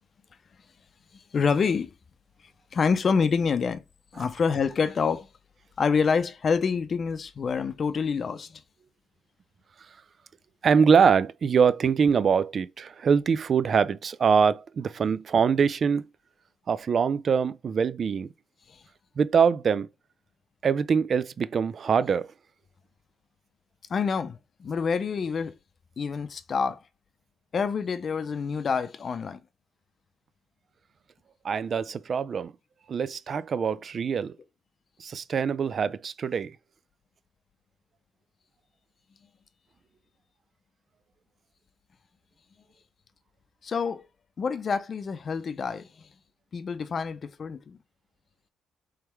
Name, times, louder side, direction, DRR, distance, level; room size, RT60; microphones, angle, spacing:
voice 1, 1.3-1.9 2.7-3.8 4.1-5.3 5.8-8.6 18.7-18.8 23.9-25.5 26.0-26.8 27.5-29.4 43.6-44.1 44.4-46.1 46.5-47.8, left 5 dB, 45° left, 0.6 m, -27 dB
voice 2, 10.6-16.0 16.7-18.3 19.2-19.9 20.6-22.3 31.4-32.5 32.9-34.3 35.0-36.6, right 6 dB, 50° right, 0.4 m, -23 dB
3.5 x 3.2 x 4.6 m
cardioid pair, 90°, 0 cm